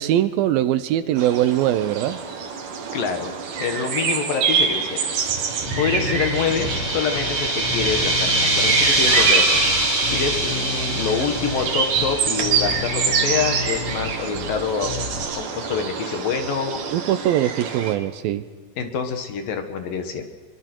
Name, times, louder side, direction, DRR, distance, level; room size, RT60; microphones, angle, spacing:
voice 1, 0.0-2.2 16.9-18.4, right 12 dB, 75° right, 12 dB, 2.4 m, -21 dB
sound 1, 1.2-17.9, right 6 dB, 60° right, 3.2 m, -26 dB
voice 2, 2.9-5.0 5.8-9.6 10.1-14.9 15.4-16.8 18.8-20.3, left 6 dB, 65° left, 6 dB, 3.2 m, -26 dB
sound 2, 5.0-13.3, right 1 dB, 15° right, 1.5 m, -24 dB
Bass guitar, 5.7-15.3, left 3 dB, 85° left, 1.1 m, -32 dB
25.5 x 23.5 x 4.6 m, 1.5 s
omnidirectional pair, 4.5 m